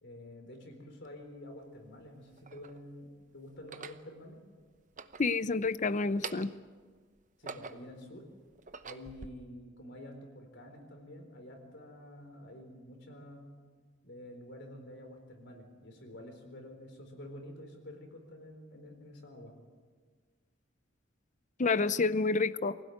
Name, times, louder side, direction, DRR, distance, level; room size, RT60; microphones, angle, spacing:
voice 1, 0.0-4.4 7.4-8.3 8.8-13.6 14.0-19.6, left 1 dB, 65° left, 4 dB, 4.2 m, -49 dB
sound 1, 1.1-1.2 2.0-2.8 3.6-4.1 4.8-5.7 6.1-6.7 7.2-8.0 8.5-9.3, right 5 dB, 40° right, 0.9 m, -45 dB
voice 2, 5.2-6.5 21.6-22.8, left 3 dB, 40° left, 15 dB, 0.7 m, -29 dB
24.0 x 16.5 x 9.3 m, 1.5 s
head